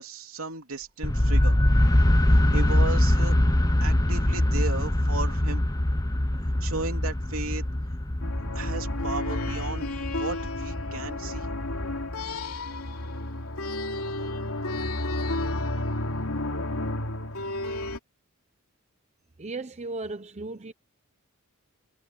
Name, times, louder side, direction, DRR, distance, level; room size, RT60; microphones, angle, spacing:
voice 1, 0.0-1.6 2.5-3.4 3.8-5.6 6.6-7.6 8.6-9.9 10.2-11.5, right 3 dB, 65° right, 3.6 m, -35 dB
sound 1, 1.0-12.9, left 1 dB, 15° left, 1.1 m, -24 dB
sound 2, 8.2-18.0, left 2 dB, 80° left, 3.1 m, -31 dB
voice 2, 19.4-20.7, right 3 dB, 30° right, 0.8 m, -35 dB
head